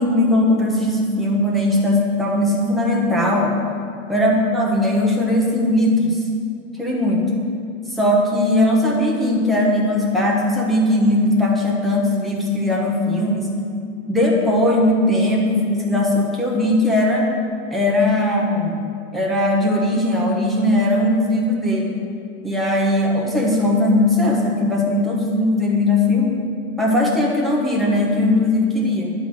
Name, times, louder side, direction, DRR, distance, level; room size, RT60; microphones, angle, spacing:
voice 1, 0.0-3.6 4.1-6.2 6.8-7.2 7.9-13.5 14.1-17.3 17.7-18.8 19.1-21.9 22.4-26.4 26.8-29.1, left 1 dB, ahead, -3 dB, 0.6 m, -19 dB
11.0 x 3.9 x 7.4 m, 2.5 s
supercardioid pair, 160°, 42 cm